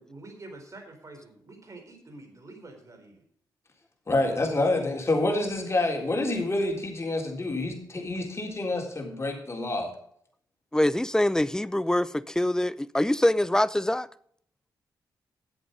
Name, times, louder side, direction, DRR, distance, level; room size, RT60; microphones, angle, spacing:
voice 1, 0.0-3.2, right 2 dB, 45° right, 4.0 m, -47 dB
voice 2, 4.1-9.9, left 2 dB, 35° left, 3.7 m, -27 dB
voice 3, 10.7-14.1, left 1 dB, 10° left, 0.6 m, -24 dB
11.0 x 8.1 x 5.3 m
cardioid pair, 60°, 8 cm